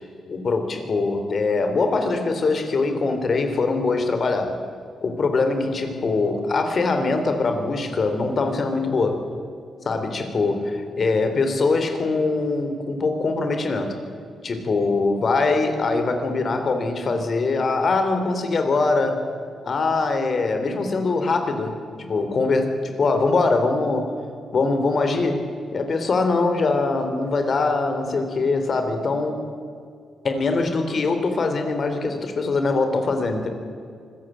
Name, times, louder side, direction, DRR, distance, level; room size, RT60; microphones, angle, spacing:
voice 1, 0.3-4.6 5.0-9.2 9.9-13.9 14.4-19.2 19.6-24.1 24.5-25.5 25.7-29.4 30.2-33.5, left 3 dB, 50° left, 7 dB, 3.8 m, -22 dB
25.0 x 15.0 x 9.3 m, 2.3 s
cardioid pair, 80°, 0 cm